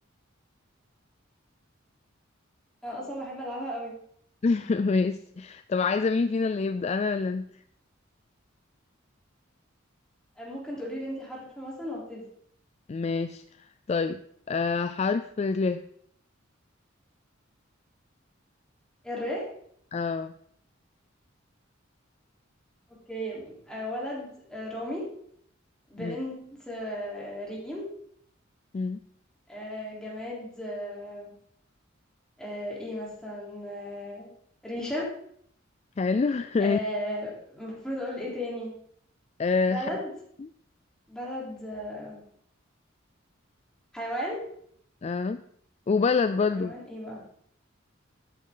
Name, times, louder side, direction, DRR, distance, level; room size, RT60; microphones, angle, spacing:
voice 1, 2.8-3.9 10.4-12.2 19.0-19.4 23.1-25.1 25.9-26.4 26.7-27.9 29.5-31.3 32.4-34.3 34.6-35.1 36.6-38.7 39.7-40.1 41.1-42.2 43.9-44.4 46.5-47.2, equal, 5° left, -5 dB, 3.6 m, -35 dB
voice 2, 4.4-7.4 12.9-13.4 13.9-14.2 14.5-15.8 19.9-20.3 26.0-26.2 28.7-29.0 36.0-36.8 39.4-39.9 40.4-40.5 45.0-45.4 45.9-46.7, left 4 dB, 35° left, 11 dB, 0.3 m, -26 dB
13.0 x 8.5 x 3.9 m, 0.66 s
head